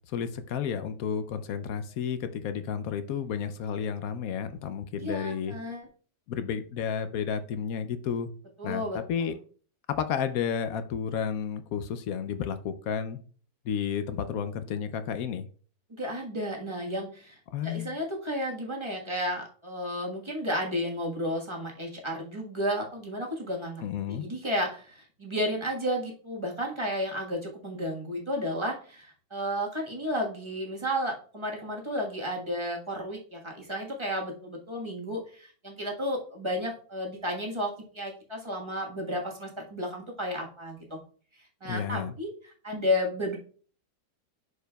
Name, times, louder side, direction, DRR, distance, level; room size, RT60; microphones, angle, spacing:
voice 1, 0.1-5.6 6.3-8.3 8.6-9.3 9.9-13.2 13.6-15.5 17.5-18.0 23.8-24.3 41.6-42.2, left 7 dB, 70° left, 11 dB, 0.9 m, -32 dB
voice 2, 5.0-5.9 8.6-9.4 15.9-41.0 41.6-42.3 42.6-43.4, equal, 20° right, -1 dB, 1.2 m, -32 dB
11.0 x 4.8 x 2.2 m, 0.43 s
omnidirectional pair, 1.8 m